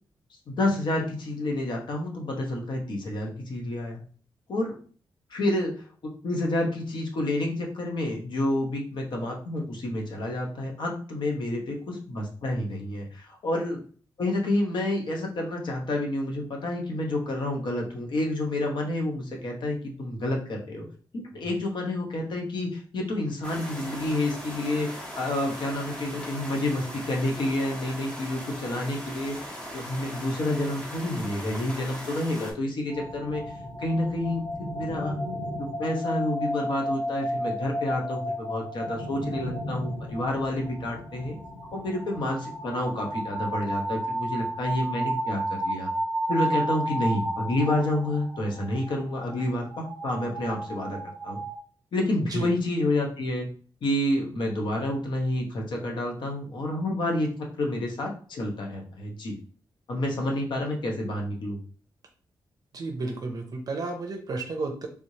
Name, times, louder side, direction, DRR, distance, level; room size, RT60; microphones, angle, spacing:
voice 1, 0.5-4.0 4.5-4.7 5.3-5.7 6.0-13.8 14.2-20.9 21.1-24.9 25.1-33.4 33.8-35.2 35.6-41.4 41.7-45.9 46.3-51.4 51.9-53.5 53.8-57.3 57.6-59.3 59.9-61.6, left 1 dB, 65° left, 1 dB, 1.0 m, -29 dB
sound 1, 23.4-32.5, equal, 15° left, 1.2 m, -39 dB
sound 2, 32.9-51.6, right 1 dB, 85° left, 1.6 m, -32 dB
voice 2, 62.7-64.9, right 3 dB, 50° right, 3 dB, 0.6 m, -32 dB
3.5 x 3.1 x 2.7 m, 0.43 s
wide cardioid pair, 140°, 8 cm